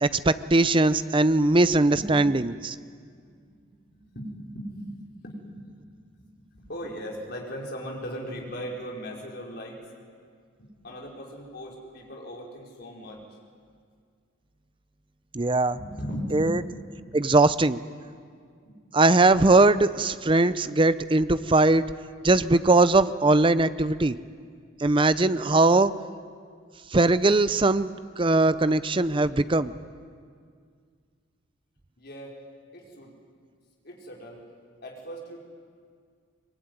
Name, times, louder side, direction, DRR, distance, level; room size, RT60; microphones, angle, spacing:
voice 1, 0.0-2.8 15.3-15.8 16.3-16.6 17.1-17.8 18.9-21.8 22.2-24.2 24.8-25.9 26.9-29.7, right 2 dB, 25° right, 14 dB, 0.6 m, -20 dB
voice 2, 3.1-4.8 5.2-9.8 10.6-13.2 15.7-17.2 18.7-18.8 32.0-32.3 32.7-33.1 33.8-34.4 34.8-35.4, equal, 50° left, -2 dB, 5.0 m, -38 dB
24.0 x 22.0 x 9.7 m, 2.1 s
head